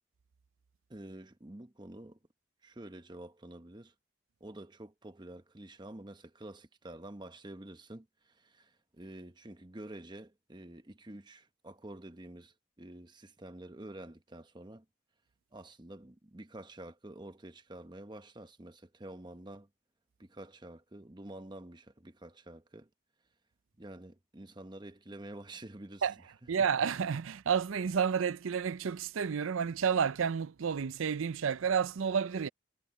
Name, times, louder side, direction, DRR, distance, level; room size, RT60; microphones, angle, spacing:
voice 1, 0.9-2.2 2.6-3.9 4.4-8.1 8.4-14.8 15.5-19.7 20.2-22.9 23.8-26.1, right 1 dB, 20° right, 0.9 m, -48 dB
voice 2, 26.5-32.5, right 7 dB, 75° right, 0.5 m, -30 dB
head